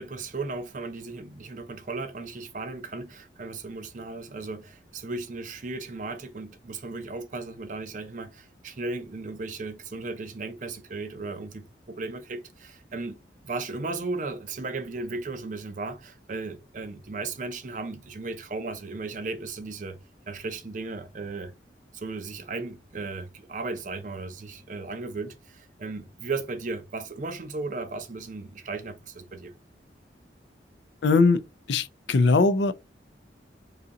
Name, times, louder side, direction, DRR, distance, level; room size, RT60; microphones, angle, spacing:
voice 1, 0.0-13.2 13.4-20.0 20.3-21.5 21.9-29.5, right 3 dB, 45° right, 0.5 m, -36 dB
voice 2, 31.0-31.4 31.7-32.7, left 3 dB, 80° left, 0.4 m, -20 dB
3.8 x 2.8 x 3.6 m
head